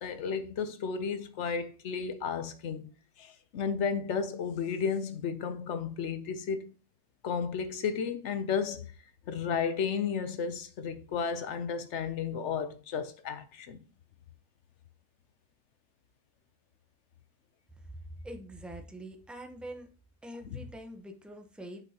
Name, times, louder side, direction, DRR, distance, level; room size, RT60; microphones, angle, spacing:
voice 1, 0.0-2.9 3.2-6.7 7.2-8.9 9.3-13.8 20.5-20.6, left 6 dB, 60° left, 0.8 m, -33 dB
voice 2, 18.2-19.9 20.2-21.8, right 1 dB, ahead, 0.4 m, -44 dB
8.3 x 6.0 x 2.8 m
omnidirectional pair, 1.6 m